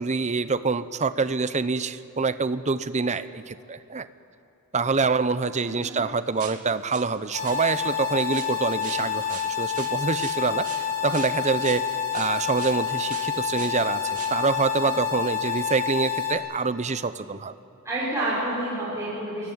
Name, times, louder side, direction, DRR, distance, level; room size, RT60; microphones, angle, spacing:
voice 1, 0.0-4.1 4.7-11.9 12.1-17.5, right 4 dB, 30° right, 13 dB, 0.8 m, -26 dB
voice 2, 5.6-6.0 17.8-19.5, right 1 dB, 15° right, -9 dB, 6.6 m, -29 dB
sound 1, 6.4-7.1 7.4-7.6 8.3-12.8 13.1-13.8 14.1-14.5 14.8-15.0 15.3-15.4 16.2-16.3, right 9 dB, 85° right, 2.4 m, -41 dB
sound 2, 7.3-16.3, left 8 dB, 40° left, 4.0 m, -28 dB
26.0 x 22.0 x 9.7 m, 2.8 s
head